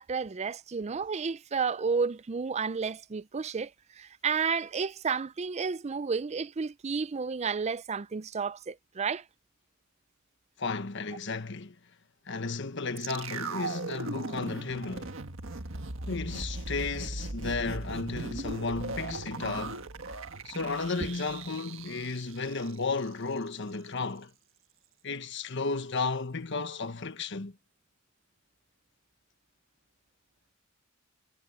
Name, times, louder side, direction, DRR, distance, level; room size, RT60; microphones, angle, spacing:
voice 1, 0.0-3.7 4.0-9.2, right 5 dB, 30° right, 0.4 m, -31 dB
voice 2, 10.6-11.7 12.3-15.2 16.1-19.9 20.4-24.3 25.0-27.5, left 4 dB, 60° left, 1.3 m, -33 dB
sound 1, 13.0-23.1 23.4-23.5, right 3 dB, 65° right, 1.6 m, -38 dB
head